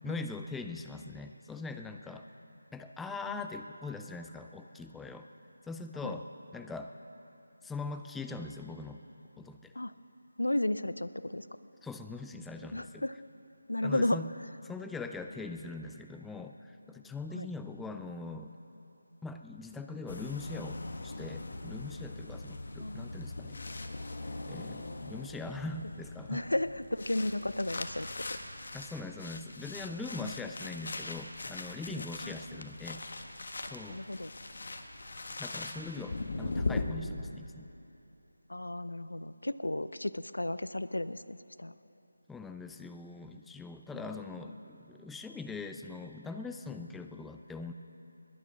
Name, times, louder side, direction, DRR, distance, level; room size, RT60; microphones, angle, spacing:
voice 1, 0.0-2.3 2.7-5.3 5.6-6.3 6.5-7.0 7.6-9.0 9.4-9.7 11.8-13.0 13.8-14.3 14.6-18.5 19.2-23.6 24.5-26.4 28.7-33.0 33.7-34.0 35.4-37.7 42.3-47.7, left 3 dB, 5° left, 6 dB, 0.4 m, -42 dB
voice 2, 10.4-11.5 12.7-13.2 13.7-14.2 17.3-17.5 22.8-23.2 26.3-28.4 30.2-30.3 32.0-32.7 33.6-34.3 36.1-36.2 38.5-41.8 43.9-44.1, left 1 dB, 85° left, 15 dB, 0.5 m, -34 dB
sound 1, 20.1-36.8, left 2 dB, 60° left, 1.3 m, -40 dB
21.5 x 9.5 x 6.3 m, 2.9 s
figure-of-eight pair, 160°, 0 cm